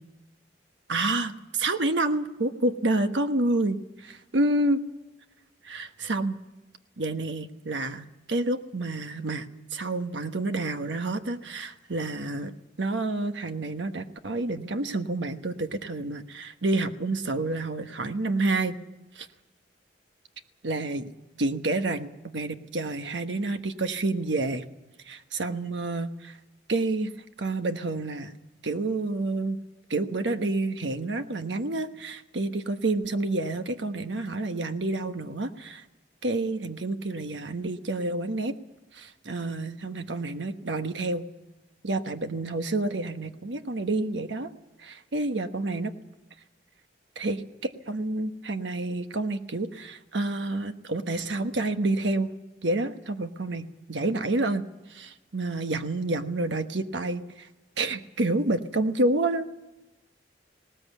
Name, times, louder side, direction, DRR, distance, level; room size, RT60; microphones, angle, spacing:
voice 1, 0.9-4.8 5.6-6.4 7.0-12.5 12.8-18.8 19.1-19.3 20.6-21.1 21.4-24.7 25.1-26.4 26.7-27.1 27.4-28.4 28.6-29.6 29.9-35.8 36.2-38.6 38.9-41.3 41.8-44.5 45.1-45.9 47.2-52.3 52.6-54.6 54.9-57.5 57.8-59.5, right 2 dB, 85° right, 8 dB, 1.2 m, -29 dB
19.5 x 18.5 x 8.4 m, 1.0 s
head